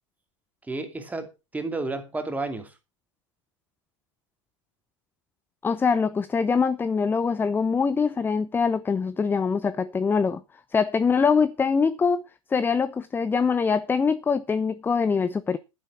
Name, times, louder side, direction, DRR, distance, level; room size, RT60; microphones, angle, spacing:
voice 1, 0.7-2.7, right 3 dB, 10° right, 2.7 m, -31 dB
voice 2, 5.6-10.4 10.7-12.2 12.5-15.6, left 5 dB, 10° left, 0.6 m, -23 dB
11.5 x 9.8 x 4.8 m
hypercardioid pair, 100°, 17 cm